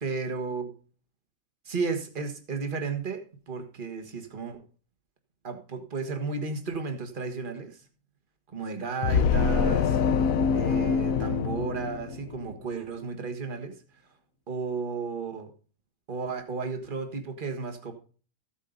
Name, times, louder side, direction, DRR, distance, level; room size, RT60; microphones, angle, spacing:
voice 1, 0.0-0.7 1.7-4.6 5.4-7.8 8.5-10.0 10.5-13.8 14.5-15.5 16.1-17.9, right 4 dB, 35° right, 6 dB, 1.8 m, -33 dB
sound 1, 9.0-12.5, left 6 dB, 70° left, 1.1 m, -25 dB
15.0 x 8.5 x 3.9 m, 0.39 s
omnidirectional pair, 1.5 m